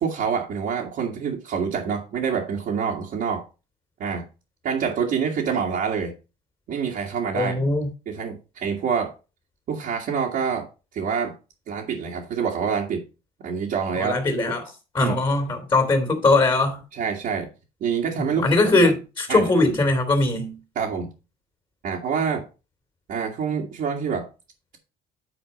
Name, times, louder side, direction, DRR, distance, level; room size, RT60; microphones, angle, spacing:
voice 1, 0.0-3.4 4.0-4.2 4.6-6.1 6.7-7.5 8.1-9.1 9.7-10.7 10.9-11.4 11.7-13.0 13.4-14.2 15.0-15.1 16.9-17.5 17.8-18.5 18.8-18.9 19.3-19.4 20.8-21.1 21.8-22.4 23.1-24.3, right 6 dB, 65° right, 1.9 m, -26 dB
voice 2, 7.3-7.9 14.0-16.8 18.3-20.6, left 2 dB, 30° left, 2.7 m, -21 dB
9.8 x 4.4 x 5.2 m
cardioid pair, 110°, 17 cm